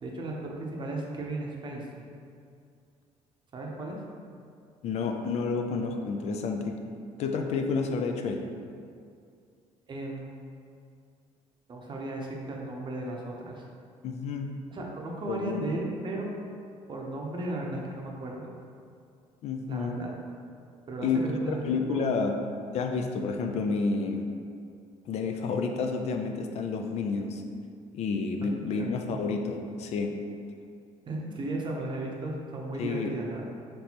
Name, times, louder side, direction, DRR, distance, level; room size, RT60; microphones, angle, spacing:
voice 1, 0.0-2.1 3.5-4.0 9.9-10.3 11.7-13.6 14.7-16.3 16.9-18.5 19.7-20.1 20.9-21.6 21.9-22.1 28.7-28.9 31.1-33.5, right 2 dB, 40° right, -1 dB, 0.7 m, -35 dB
voice 2, 4.8-6.8 7.2-8.4 14.0-14.6 15.3-15.6 19.4-20.0 21.0-21.2 21.7-22.4 22.7-24.3 25.1-27.4 27.9-30.2 32.8-33.1, left 4 dB, 60° left, 3 dB, 0.4 m, -30 dB
4.3 x 3.2 x 2.8 m, 2.3 s
cardioid pair, 110°, 13 cm